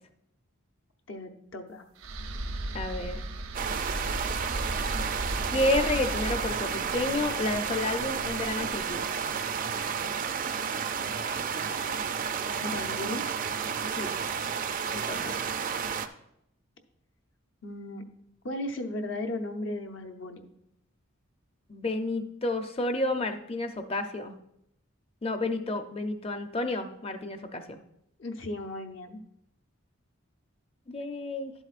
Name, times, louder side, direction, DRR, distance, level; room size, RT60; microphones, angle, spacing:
voice 1, 1.1-1.9 12.6-13.2 17.6-18.0 18.4-20.5 28.2-29.2, left 1 dB, 65° left, 6 dB, 0.8 m, -36 dB
sound 1, 2.0-9.2, right 1 dB, 80° right, 0.8 m, -36 dB
voice 2, 2.7-3.3 5.5-9.0 13.9-14.1 14.9-15.4 21.7-24.4 25.2-27.8 30.9-31.5, left 2 dB, 25° left, 7 dB, 0.6 m, -30 dB
sound 2, 3.5-16.1, right 6 dB, 40° right, 0.4 m, -31 dB
11.5 x 7.8 x 2.5 m, 0.80 s
head